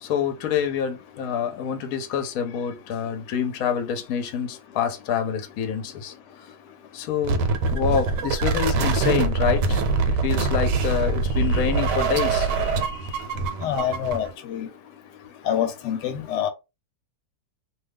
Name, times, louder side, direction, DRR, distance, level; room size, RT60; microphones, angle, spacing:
voice 1, 0.0-6.1 6.9-7.4 7.7-9.8 10.1-13.2, left 8 dB, 65° left, 1.1 m, -27 dB
sound 1, 7.2-14.3, right 4 dB, 80° right, 1.2 m, -24 dB
voice 2, 13.6-14.3 14.5-14.7 15.5-16.5, left 9 dB, 80° left, 1.2 m, -25 dB
2.7 x 2.3 x 3.4 m
omnidirectional pair, 1.8 m